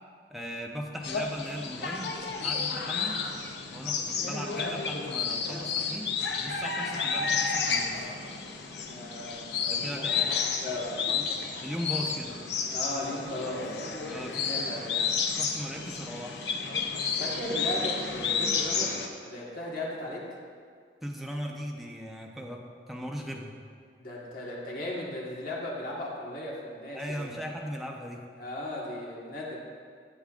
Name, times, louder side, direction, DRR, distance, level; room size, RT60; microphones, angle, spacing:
voice 1, 0.3-2.2 2.4-3.3 3.7-6.1 6.4-8.1 9.7-10.3 11.1-11.3 11.6-12.4 14.1-14.8 15.4-16.4 21.0-23.5 26.9-28.2, equal, ahead, -1 dB, 0.7 m, -38 dB
sound 1, 1.0-19.1, left 5 dB, 70° left, 0.7 m, -31 dB
voice 2, 8.8-10.0 10.6-10.9 12.7-15.0 17.2-18.9 19.2-20.2 24.0-27.5 28.4-29.6, left 1 dB, 55° left, -4 dB, 1.5 m, -37 dB
11.5 x 7.9 x 2.5 m, 2.1 s
head